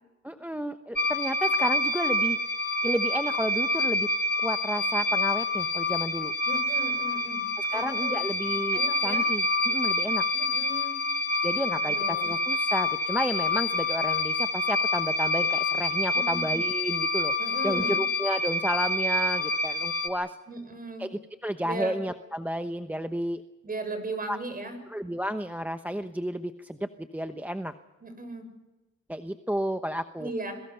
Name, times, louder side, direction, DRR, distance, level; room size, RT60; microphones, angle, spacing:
voice 1, 0.2-2.4 2.8-4.1 4.4-6.3 7.6-10.2 11.4-17.3 17.6-20.4 21.0-23.4 24.3-24.4 24.9-27.7 29.1-30.3, equal, 5° right, 8 dB, 1.0 m, -32 dB
sound 1, 1.0-20.1, left 2 dB, 30° left, 2.7 m, -27 dB
voice 2, 6.4-8.2 8.7-9.3 10.3-11.0 11.8-12.3 16.1-16.4 17.4-18.0 20.5-21.1 21.6-21.9 23.6-24.8 28.0-28.5 30.2-30.6, right 2 dB, 30° right, 7 dB, 6.8 m, -37 dB
27.0 x 22.5 x 5.8 m, 1.1 s
cardioid pair, 90°, 30 cm